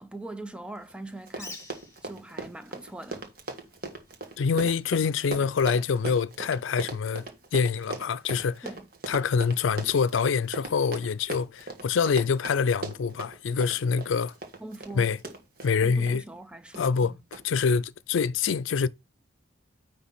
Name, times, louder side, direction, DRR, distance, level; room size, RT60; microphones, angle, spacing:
voice 1, 0.0-1.7 2.0-3.3 8.6-8.9 14.6-15.2 15.8-17.2, right 2 dB, 5° right, 0.6 m, -42 dB
Run, 0.9-1.0 1.2-16.2 16.7-17.0 17.3-17.4, right 2 dB, 50° right, 1.5 m, -39 dB
Bird, 1.3-7.9, left 2 dB, 15° left, 1.5 m, -52 dB
voice 2, 4.4-7.3 7.5-8.6 9.1-14.3 15.0-15.2 15.6-16.2 16.8-17.1 17.4-18.9, left 5 dB, 85° left, 0.4 m, -25 dB
9.6 x 3.3 x 5.8 m
head